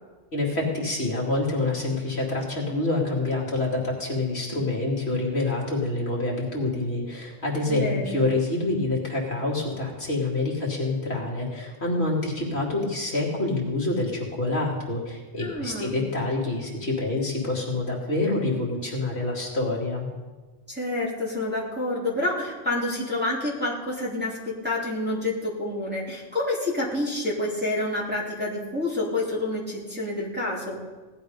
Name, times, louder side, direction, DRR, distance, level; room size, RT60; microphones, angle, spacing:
voice 1, 0.3-20.1, left 2 dB, 55° left, -2 dB, 2.6 m, -27 dB
voice 2, 7.7-8.2 15.4-16.0 20.7-30.8, left 2 dB, 10° right, -7 dB, 3.3 m, -28 dB
17.5 x 11.5 x 5.3 m, 1.3 s
omnidirectional pair, 1.3 m